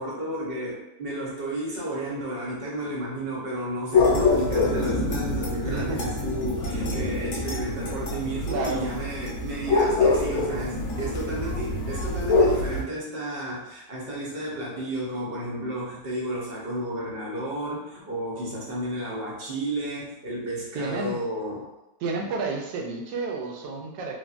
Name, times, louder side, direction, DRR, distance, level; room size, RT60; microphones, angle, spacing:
voice 1, 0.0-21.7 22.3-22.4, right 1 dB, 50° right, -5 dB, 0.7 m, -32 dB
sound 1, 3.9-12.8, left 3 dB, 65° left, 0.8 m, -25 dB
voice 2, 5.6-6.0 8.5-8.9 20.7-21.2 22.0-24.2, right 3 dB, 75° right, 1 dB, 1.2 m, -31 dB
3.4 x 2.2 x 2.4 m, 0.98 s
omnidirectional pair, 1.9 m